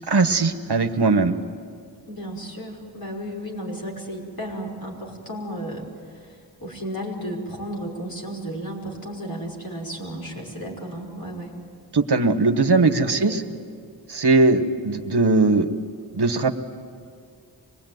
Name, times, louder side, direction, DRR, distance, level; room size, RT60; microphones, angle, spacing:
voice 1, 0.1-1.3 11.9-13.4 14.1-15.7 16.1-16.6, right 3 dB, 70° right, 8 dB, 1.3 m, -19 dB
voice 2, 2.1-11.5 13.1-13.4, equal, 55° left, -2 dB, 5.4 m, -34 dB
25.0 x 20.5 x 9.4 m, 2.2 s
wide cardioid pair, 60°, 42 cm